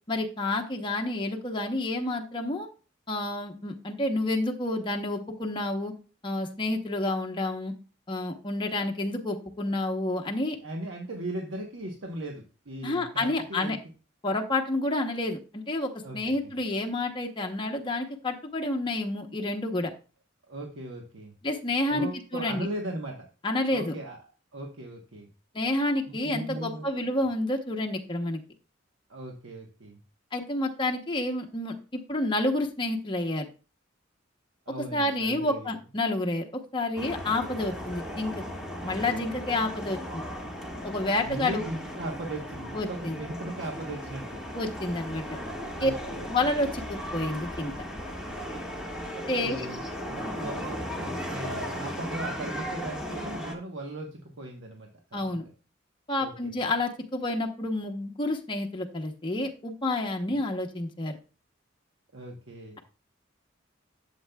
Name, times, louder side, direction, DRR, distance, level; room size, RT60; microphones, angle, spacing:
voice 1, 0.1-2.7 3.1-5.9 6.2-7.7 8.1-10.6 12.8-13.8 14.2-19.9 21.4-22.7 23.4-23.9 25.5-28.4 30.3-33.5 34.9-38.4 38.8-40.2 40.8-41.7 42.7-43.2 44.5-45.2 45.8-45.9 46.2-47.7 49.3-49.7 55.1-55.4 56.1-61.2, left 2 dB, 25° left, 2 dB, 0.8 m, -29 dB
voice 2, 10.6-13.8 16.0-16.5 20.5-21.3 21.9-23.3 23.7-24.2 24.5-25.3 26.1-27.1 29.1-30.0 34.7-35.7 41.2-44.4 45.8-46.3 49.4-55.3 56.2-56.7 62.1-62.8, right 1 dB, 85° right, 1 dB, 1.1 m, -38 dB
sound 1, 37.0-53.5, equal, 5° right, 1.5 m, -36 dB
11.5 x 7.3 x 2.2 m, 0.34 s
head